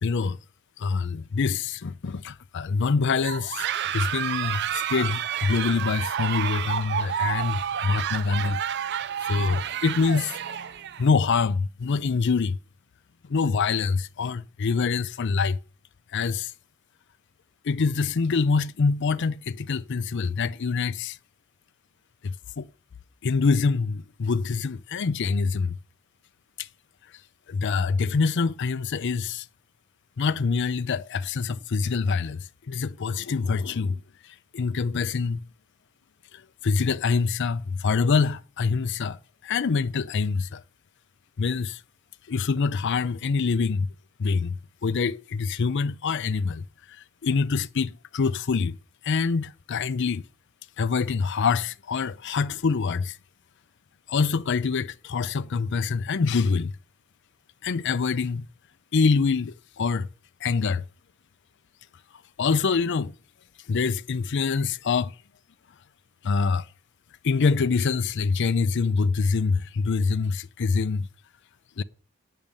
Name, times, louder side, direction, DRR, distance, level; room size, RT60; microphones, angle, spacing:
voice 1, 0.0-0.4 0.8-8.6 9.2-10.7 11.0-12.6 13.2-15.6 16.1-16.5 17.6-21.2 22.2-22.7 23.2-25.8 26.6-26.7 27.5-29.5 30.2-35.4 36.3-40.6 41.4-41.8 42.3-43.9 44.2-48.8 49.0-50.2 50.8-53.2 54.1-56.7 57.6-58.5 58.9-60.1 60.4-60.8 62.4-63.1 63.7-65.1 66.2-66.7 67.2-71.1 71.8-71.9, left 5 dB, 55° left, 0.5 m, -25 dB
sound 1, 3.2-11.1, right 9 dB, 50° right, 0.4 m, -30 dB
8.9 x 6.5 x 8.3 m
head